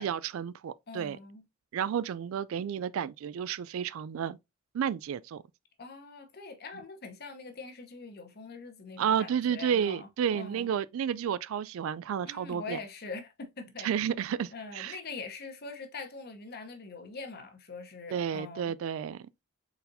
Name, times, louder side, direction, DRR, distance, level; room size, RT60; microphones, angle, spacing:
voice 1, 0.0-1.2 1.7-4.4 4.7-5.4 9.0-12.8 13.8-15.0 18.1-19.4, right 8 dB, 75° right, 0.3 m, -31 dB
voice 2, 0.9-1.4 5.8-10.7 12.2-13.9 14.5-18.7, left 4 dB, 50° left, 0.9 m, -43 dB
4.2 x 4.0 x 2.6 m
head